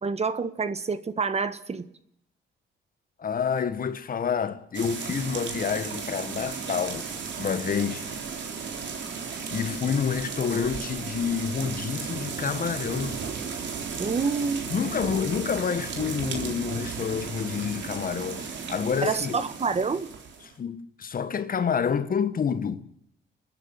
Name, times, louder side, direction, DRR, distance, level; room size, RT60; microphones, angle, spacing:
voice 1, 0.0-1.9 14.0-14.6 19.0-20.1, right 5 dB, 30° right, 1.5 m, -27 dB
voice 2, 3.2-7.1 7.4-8.1 9.1-9.2 9.5-13.2 14.7-19.4 20.6-22.9, left 7 dB, 45° left, 1.5 m, -28 dB
sound 1, 4.7-20.5, right 5 dB, 65° right, 3.8 m, -35 dB
29.5 x 10.5 x 10.0 m
cardioid pair, 90°, 20 cm